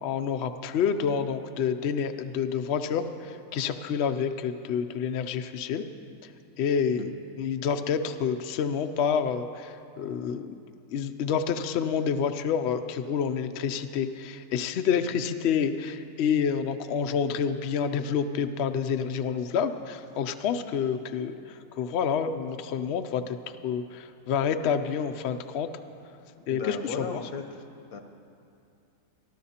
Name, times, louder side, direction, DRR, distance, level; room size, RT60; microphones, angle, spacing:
voice 1, 0.0-5.8 6.2-6.3 6.6-10.5 10.9-23.4 23.6-25.7 26.5-27.2, left 7 dB, 65° left, 8 dB, 0.7 m, -28 dB
voice 2, 26.5-27.6 27.9-28.0, left 5 dB, 85° left, 6 dB, 1.3 m, -36 dB
23.5 x 12.5 x 2.8 m, 2.6 s
omnidirectional pair, 1.5 m